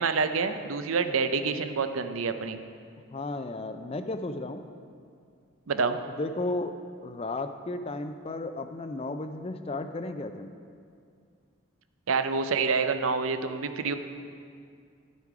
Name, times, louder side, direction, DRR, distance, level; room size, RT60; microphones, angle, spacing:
voice 1, 0.0-2.6 5.7-6.0 12.1-13.9, right 4 dB, 80° right, 9 dB, 0.6 m, -27 dB
voice 2, 3.1-4.6 6.2-6.7 7.0-10.5, left 2 dB, 30° left, 9 dB, 0.4 m, -34 dB
10.5 x 8.2 x 4.8 m, 2.3 s
head